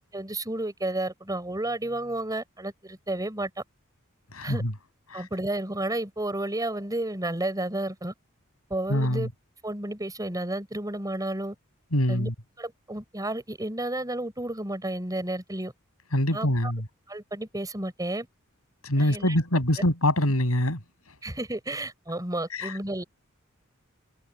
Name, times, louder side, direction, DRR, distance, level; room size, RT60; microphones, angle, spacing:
voice 1, 0.1-3.5 4.4-4.6 5.1-8.1 8.7-9.3 9.6-11.6 12.1-12.3 12.6-15.7 16.3-16.7 17.1-18.3 19.0-19.4 21.2-23.0, right 1 dB, 15° right, 6.9 m, -31 dB
voice 2, 4.3-4.7 5.1-5.2 8.9-9.3 11.9-12.3 16.1-16.9 18.8-20.8 22.5-22.7, left 1 dB, 90° left, 7.0 m, -24 dB
head